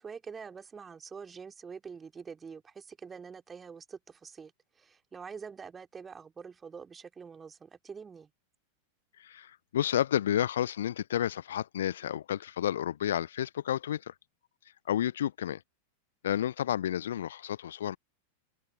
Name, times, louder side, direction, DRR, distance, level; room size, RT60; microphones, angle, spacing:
voice 1, 0.0-8.3, right 6 dB, 15° right, 3.5 m, -46 dB
voice 2, 9.2-14.1 14.9-15.6 16.2-18.0, left 10 dB, 60° left, 0.6 m, -31 dB
figure-of-eight pair, 90°, 0 cm